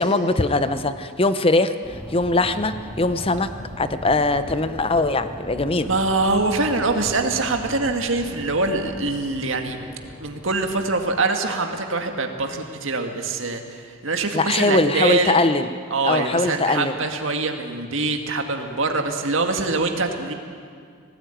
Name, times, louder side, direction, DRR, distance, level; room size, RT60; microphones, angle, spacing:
voice 1, 0.0-3.5 3.8-5.9 14.3-15.7 16.0-16.9, left 2 dB, 25° left, 11 dB, 0.8 m, -21 dB
sound 1, 1.8-11.2, equal, ahead, 2.0 m, -39 dB
voice 2, 5.8-9.8 10.2-15.4 15.9-20.3, right 3 dB, 65° right, 4 dB, 2.0 m, -24 dB
20.0 x 17.5 x 9.2 m, 2.2 s
head